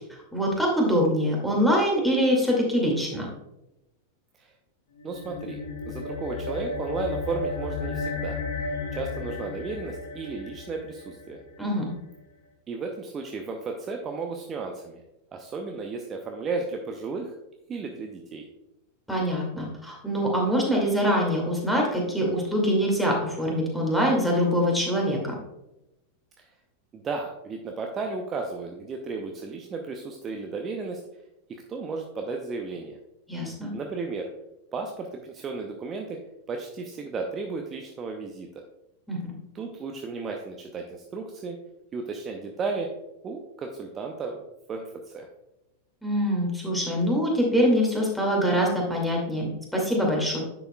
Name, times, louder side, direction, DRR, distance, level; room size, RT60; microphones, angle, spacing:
voice 1, 0.3-3.3 11.6-11.9 19.1-25.3 33.3-33.7 39.1-39.3 46.0-50.4, equal, ahead, -2 dB, 2.2 m, -24 dB
sound 1, 4.9-11.6, left 3 dB, 65° left, 1.3 m, -34 dB
voice 2, 5.0-5.6 5.9-8.4 8.9-11.4 12.7-15.0 15.3-17.3 17.7-18.4 26.9-31.0 31.5-33.0 33.7-34.3 34.7-36.2 36.5-38.6 39.5-41.6 41.9-42.9 43.2-44.4 44.7-45.3, right 4 dB, 25° right, 3 dB, 0.7 m, -34 dB
10.0 x 6.9 x 2.3 m, 0.92 s
figure-of-eight pair, 90°, 0 cm